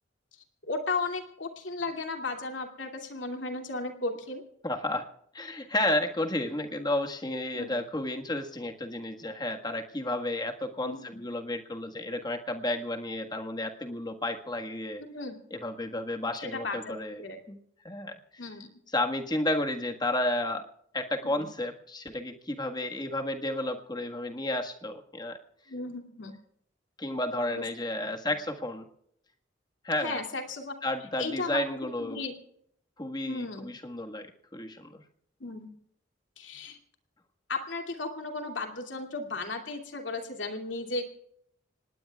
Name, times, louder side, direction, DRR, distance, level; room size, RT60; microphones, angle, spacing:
voice 1, 0.7-4.4 7.5-7.8 10.8-11.0 15.0-15.4 16.4-17.4 18.4-18.7 21.2-21.5 25.7-26.3 27.5-27.6 30.0-30.7 31.2-31.6 32.0-32.3 33.2-33.7 35.4-35.7 36.4-36.8 37.5-41.0, left 3 dB, 80° left, 5 dB, 2.6 m, -35 dB
voice 2, 4.6-5.1 5.3-15.0 15.5-17.6 17.8-18.4 18.9-20.7 20.9-25.4 27.0-28.9 29.8-30.2 30.8-32.2 33.0-35.0, left 1 dB, 20° left, 4 dB, 1.6 m, -32 dB
26.0 x 19.5 x 2.4 m, 0.69 s
head